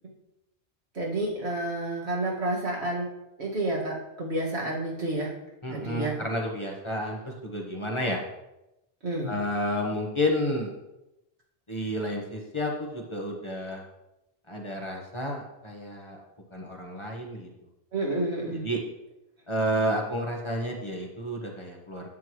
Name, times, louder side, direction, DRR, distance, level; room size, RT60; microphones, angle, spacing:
voice 1, 0.9-3.1 3.4-5.3 5.7-6.1 9.0-9.3 17.9-18.7, right 2 dB, 90° right, -3 dB, 2.1 m, -30 dB
voice 2, 5.6-8.2 9.3-10.7 11.7-13.8 14.5-16.2 16.5-17.5 18.5-18.8 19.5-22.0, equal, 30° left, 0 dB, 1.2 m, -30 dB
9.6 x 7.9 x 3.1 m, 0.92 s
omnidirectional pair, 1.1 m